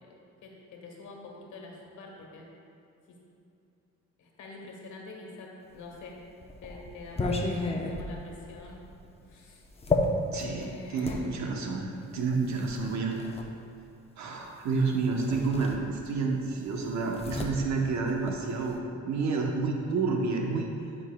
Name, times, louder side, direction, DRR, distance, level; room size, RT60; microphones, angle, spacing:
voice 1, 0.1-2.5 3.1-3.2 4.2-6.2 6.6-8.8 9.3-9.6 10.3-11.2, left 3 dB, 75° left, -1 dB, 1.3 m, -46 dB
sound 1, 5.9-11.2 12.1-13.5 14.7-14.8 15.2-16.3 16.5-18.8, left 3 dB, 20° left, 0.7 m, -33 dB
voice 2, 10.3-13.1 14.2-18.8 19.0-20.7, right 4 dB, 65° right, 1 dB, 0.9 m, -29 dB
11.0 x 5.6 x 2.2 m, 2.7 s
cardioid pair, 90°, 30 cm